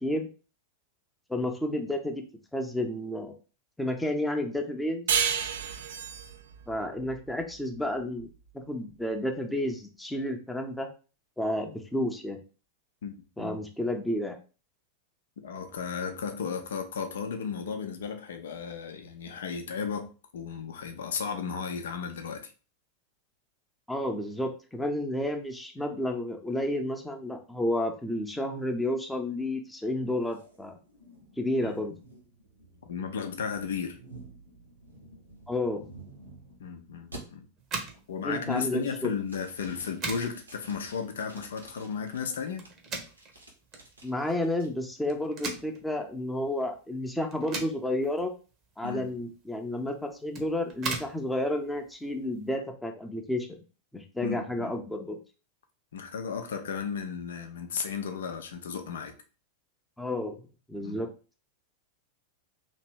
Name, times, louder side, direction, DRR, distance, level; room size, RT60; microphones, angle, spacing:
voice 1, 1.3-2.2 2.5-3.3 3.8-5.1 6.7-8.3 8.7-10.9 11.4-12.4 13.4-14.4 23.9-30.8 31.4-32.0 35.5-35.8 38.2-39.1 44.0-48.3 48.8-53.5 53.9-55.2 60.0-60.4 60.7-61.1, left 1 dB, 5° left, 0.7 m, -31 dB
sound 1, 5.1-8.3, right 7 dB, 60° right, 0.4 m, -31 dB
voice 2, 13.0-13.6 15.4-22.5 31.6-31.7 32.8-34.0 36.6-37.5 38.1-42.6 48.8-49.1 54.2-54.7 55.9-59.1 60.8-61.0, left 6 dB, 60° left, 0.6 m, -34 dB
sound 2, 30.3-36.6 37.1-37.2 37.7-38.1 38.5-38.9 39.3-42.2 42.6-44.7, right 2 dB, 80° right, 1.2 m, -51 dB
sound 3, 37.6-52.6, right 4 dB, 35° right, 0.9 m, -42 dB
3.0 x 2.9 x 4.5 m
figure-of-eight pair, 90°, 0 cm